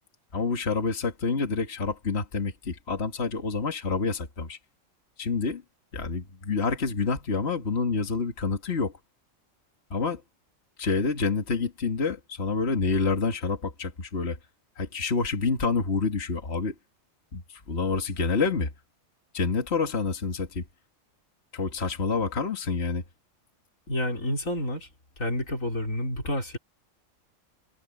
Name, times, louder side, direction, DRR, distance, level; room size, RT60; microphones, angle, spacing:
voice 1, 0.3-4.6 5.2-5.6 5.9-8.9 9.9-10.2 10.8-14.4 14.8-16.7 17.3-18.7 19.3-20.6 21.5-23.0, left 4 dB, 55° left, 2.1 m, -28 dB
voice 2, 23.9-24.9 25.2-26.6, left 1 dB, 80° left, 5.0 m, -29 dB
omnidirectional pair, 1.4 m